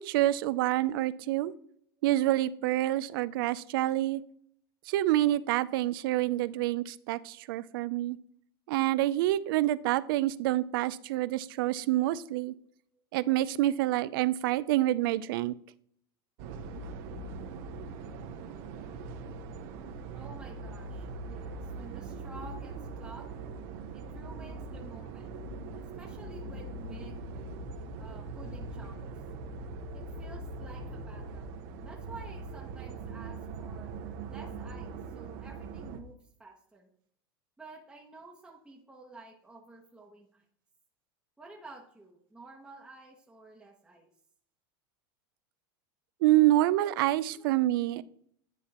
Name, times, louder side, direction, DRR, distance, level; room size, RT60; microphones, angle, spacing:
voice 1, 0.0-1.5 2.0-4.2 4.9-8.2 8.7-12.5 13.1-15.5 46.2-48.0, right 15 dB, 75° right, 17 dB, 0.4 m, -27 dB
sound 1, 16.4-36.0, right 3 dB, 60° right, 0.9 m, -41 dB
voice 2, 20.1-23.4 23.9-25.4 25.7-27.2 28.0-29.0 29.9-31.6 31.8-33.9 34.3-36.9 37.6-40.4 41.4-44.1 47.3-47.4, right 3 dB, 5° right, -3 dB, 1.0 m, -51 dB
10.0 x 3.5 x 4.2 m, 0.65 s
supercardioid pair, 135°, 12 cm